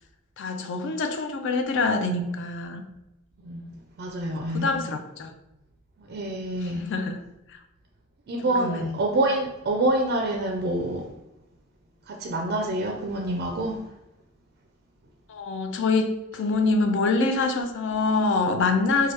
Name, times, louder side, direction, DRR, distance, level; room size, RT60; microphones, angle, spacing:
voice 1, 0.4-2.8 4.5-5.3 6.6-7.2 7.5-7.6 8.4-9.0 15.3-19.1, left 3 dB, 60° left, 6 dB, 0.4 m, -25 dB
voice 2, 4.0-4.7 6.0-6.9 8.3-11.1 12.1-13.8, right 1 dB, 50° right, 1 dB, 0.4 m, -27 dB
2.9 x 2.3 x 3.2 m, 0.92 s
head